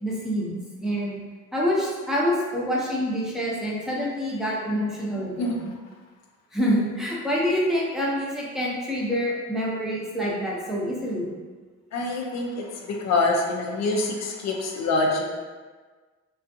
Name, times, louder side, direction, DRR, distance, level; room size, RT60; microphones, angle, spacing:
voice 1, 0.0-1.2 1.5-5.7 6.5-11.3, equal, ahead, -5 dB, 0.6 m, -26 dB
voice 2, 11.9-15.2, left 2 dB, 65° left, 1 dB, 0.5 m, -25 dB
2.4 x 2.3 x 2.6 m, 1.4 s
cardioid pair, 90°, 30 cm